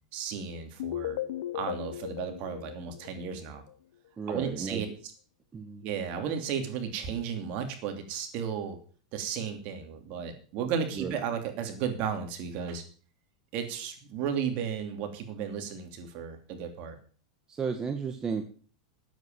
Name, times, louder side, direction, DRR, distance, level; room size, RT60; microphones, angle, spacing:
voice 1, 0.1-1.2 1.5-3.6 4.3-4.9 5.8-8.8 9.1-12.8 13.5-17.0, right 7 dB, 50° right, 6 dB, 2.9 m, -34 dB
sound 1, 0.8-3.7, left 12 dB, 75° left, 0.6 m, -37 dB
voice 2, 4.2-4.8 5.5-5.8 10.9-11.2 17.5-18.5, right 5 dB, 20° right, 5 dB, 1.3 m, -33 dB
9.3 x 8.2 x 7.4 m, 0.42 s
supercardioid pair, 125°, 3 cm